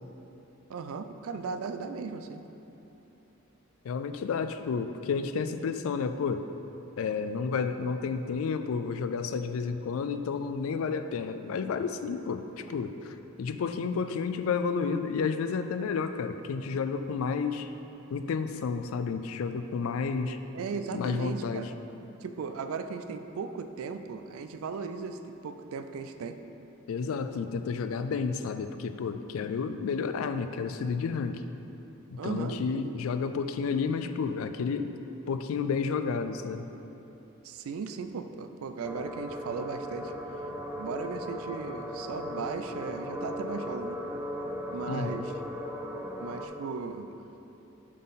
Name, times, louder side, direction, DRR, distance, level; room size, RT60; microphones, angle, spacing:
voice 1, 0.7-2.4 20.5-21.7 22.2-26.4 32.2-32.9 37.4-40.1 40.8-44.0 44.7-45.3 46.2-47.1, right 5 dB, 90° right, 9 dB, 0.4 m, -37 dB
voice 2, 3.8-6.5 7.0-17.7 18.1-20.4 20.9-21.7 26.9-31.4 32.1-34.9 35.3-36.7 44.9-45.3, left 5 dB, 80° left, 9 dB, 0.3 m, -31 dB
sound 1, 38.8-46.5, equal, 10° right, 0.4 m, -37 dB
7.3 x 3.8 x 4.0 m, 3.0 s
head